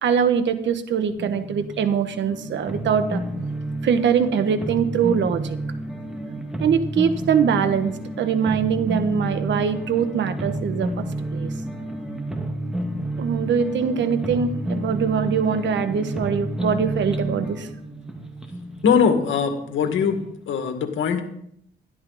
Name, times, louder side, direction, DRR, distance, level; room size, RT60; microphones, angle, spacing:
voice 1, 0.0-3.2 3.8-5.6 6.6-11.5 13.2-17.7, right 7 dB, 70° right, 10 dB, 1.3 m, -23 dB
sound 1, 1.1-20.2, right 1 dB, 5° right, 2.2 m, -30 dB
voice 2, 18.8-20.2 20.5-21.2, left 6 dB, 75° left, 6 dB, 2.1 m, -21 dB
12.5 x 12.0 x 4.2 m, 0.72 s
cardioid pair, 90°, 20 cm